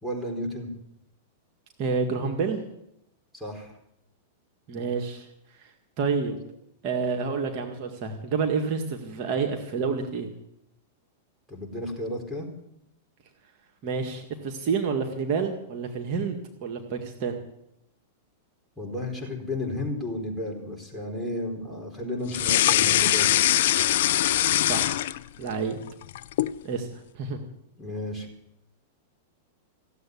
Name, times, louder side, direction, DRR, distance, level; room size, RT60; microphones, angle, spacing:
voice 1, 0.0-0.7 3.3-3.7 11.5-12.5 18.8-23.4 27.8-28.3, left 1 dB, 5° right, 1 dB, 4.4 m, -33 dB
voice 2, 1.8-2.6 4.7-5.3 5.5-6.4 6.8-10.3 13.8-17.4 24.6-25.1 25.4-25.8 26.6-27.4, right 5 dB, 50° right, 3 dB, 2.0 m, -29 dB
sound 1, 22.3-25.5 25.9-26.6, left 13 dB, 65° left, 0.5 m, -22 dB
16.0 x 8.2 x 9.5 m, 0.81 s
hypercardioid pair, 115°, 0 cm